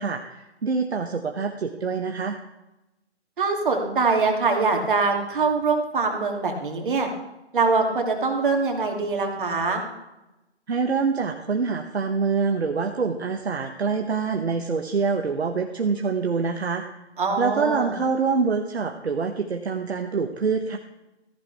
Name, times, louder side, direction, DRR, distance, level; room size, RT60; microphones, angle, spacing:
voice 1, 0.0-2.4 10.7-16.8 17.4-20.8, right 5 dB, 65° right, 5 dB, 1.2 m, -25 dB
voice 2, 3.4-7.1 7.5-9.8 17.2-17.9, right 4 dB, 45° right, 2 dB, 2.8 m, -23 dB
15.0 x 15.0 x 3.5 m, 0.96 s
figure-of-eight pair, 145°, 35 cm